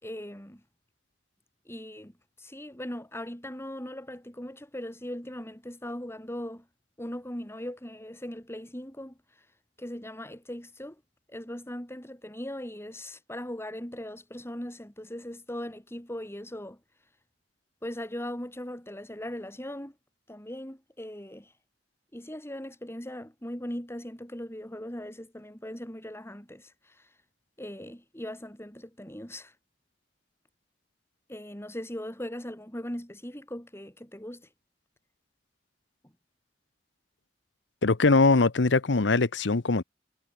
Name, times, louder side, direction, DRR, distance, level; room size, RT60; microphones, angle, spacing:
voice 1, 0.0-0.6 1.6-2.1 2.4-6.7 7.0-9.5 9.8-11.0 11.3-16.8 17.8-19.9 20.3-21.5 22.1-27.2 27.6-29.5 31.3-34.5, left 1 dB, 15° left, 5.0 m, -39 dB
voice 2, 37.8-39.8, left 3 dB, 90° left, 0.9 m, -22 dB
head